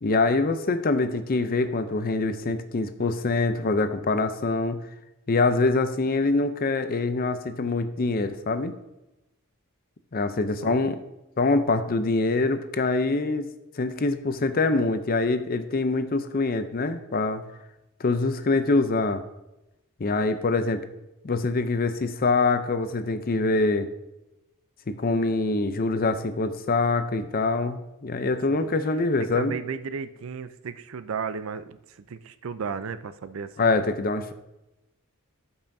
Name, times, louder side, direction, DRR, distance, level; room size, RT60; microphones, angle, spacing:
voice 1, 0.0-4.8 5.3-8.7 10.1-10.9 11.4-13.5 13.8-17.4 18.0-19.2 20.0-20.8 21.2-23.9 24.9-29.6 33.6-34.3, left 3 dB, 40° left, 10 dB, 0.6 m, -24 dB
voice 2, 29.2-33.7, right 5 dB, 65° right, 12 dB, 0.4 m, -34 dB
13.0 x 5.5 x 2.7 m, 0.94 s
head